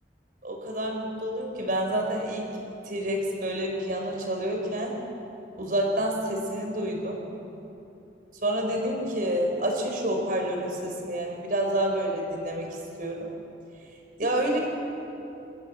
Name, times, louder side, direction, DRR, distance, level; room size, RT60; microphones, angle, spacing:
voice 1, 0.4-2.5 2.9-4.9 5.6-7.2 8.4-12.7 13.0-13.3 14.2-14.6, right 1 dB, 50° right, 1 dB, 4.7 m, -28 dB
29.5 x 15.5 x 7.5 m, 2.9 s
head